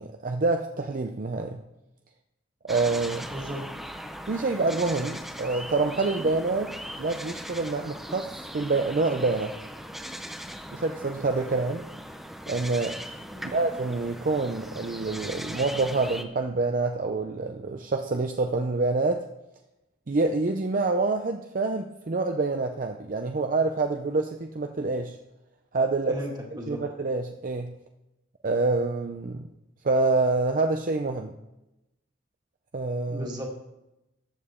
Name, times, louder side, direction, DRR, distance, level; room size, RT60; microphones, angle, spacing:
voice 1, 0.0-1.6 2.6-3.3 4.3-9.5 10.7-11.9 12.5-13.0 13.4-19.2 20.1-25.2 25.7-26.1 26.7-27.7 28.4-29.5 29.8-31.3 32.7-33.3, right 3 dB, 45° right, 5 dB, 0.6 m, -27 dB
sound 1, 2.7-16.2, equal, ahead, 0.6 m, -39 dB
voice 2, 3.3-3.6 13.3-13.5 26.1-26.8 33.1-33.5, equal, 20° right, -1 dB, 2.0 m, -35 dB
14.0 x 8.7 x 3.7 m, 0.94 s
head